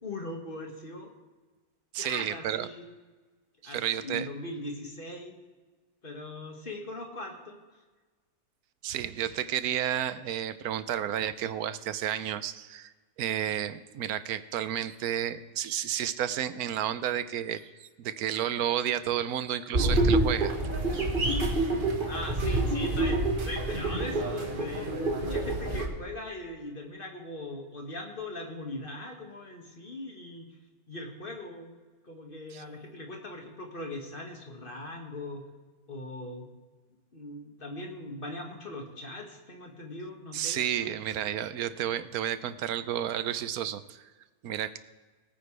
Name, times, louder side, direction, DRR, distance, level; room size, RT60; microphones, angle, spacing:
voice 1, 0.0-1.1 2.0-2.8 3.6-5.3 6.0-7.6 22.1-30.5 30.9-31.8 32.0-35.4 35.9-36.5 37.1-40.9, left 1 dB, 35° left, 1 dB, 2.1 m, -40 dB
voice 2, 1.9-2.7 3.6-4.3 8.8-12.9 13.2-20.5 32.5-32.6 40.3-44.1 44.4-44.8, right 10 dB, 75° right, 13 dB, 1.1 m, -31 dB
sound 1, 19.7-25.9, right 2 dB, 35° right, 1.7 m, -27 dB
20.0 x 9.1 x 3.3 m, 1.3 s
omnidirectional pair, 1.7 m